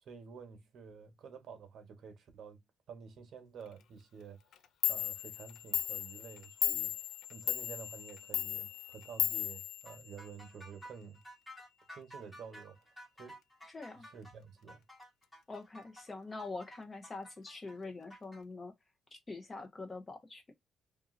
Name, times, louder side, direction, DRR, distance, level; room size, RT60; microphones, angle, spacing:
voice 1, 0.0-2.6 2.9-4.4 4.9-7.0 7.3-11.2 11.9-12.9 13.2-13.4 14.0-14.8, right 6 dB, 65° right, 1.1 m, -50 dB
Clock, 4.5-4.6 4.8-10.5, left 12 dB, 75° left, 0.4 m, -36 dB
sound 1, 9.9-18.4, equal, 10° left, 1.6 m, -53 dB
voice 2, 13.7-14.1 15.5-18.7 19.1-20.4, left 3 dB, 25° left, 1.0 m, -44 dB
2.7 x 2.6 x 2.5 m
cardioid pair, 90°, 0 cm